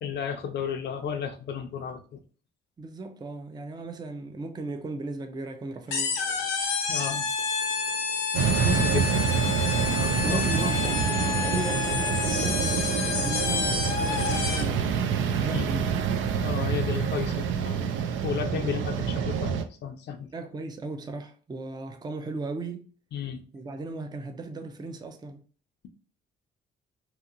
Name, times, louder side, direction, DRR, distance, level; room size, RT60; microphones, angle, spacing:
voice 1, 0.0-2.2 6.9-7.3 8.6-9.3 10.0-10.7 11.2-11.5 15.5-15.7 16.4-17.9 18.2-20.3 23.1-23.4, left 7 dB, 60° left, 0.5 m, -33 dB
voice 2, 2.8-6.1 10.2-15.9 18.6-18.7 20.3-22.8 23.5-25.4, right 3 dB, 20° right, 0.4 m, -36 dB
sound 1, 5.9-14.8, left 5 dB, 90° left, 0.8 m, -29 dB
sound 2, 8.3-19.6, right 7 dB, 75° right, 0.4 m, -27 dB
2.8 x 2.7 x 2.5 m
cardioid pair, 90°, 20 cm